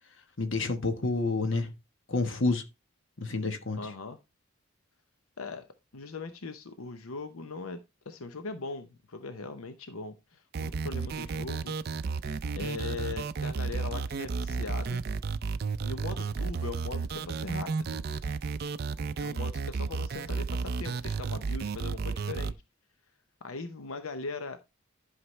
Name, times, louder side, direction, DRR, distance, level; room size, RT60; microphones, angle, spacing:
voice 1, 0.4-1.7 2.1-2.6 3.2-3.9, left 3 dB, 65° left, 1.2 m, -29 dB
voice 2, 3.8-4.2 5.4-5.7 5.9-7.8 8.1-11.7 12.6-15.0 15.8-18.0 19.2-22.5 23.4-24.6, left 3 dB, 90° left, 0.8 m, -40 dB
sound 1, 10.5-22.5, right 4 dB, 45° right, 0.4 m, -33 dB
11.0 x 5.7 x 3.2 m
head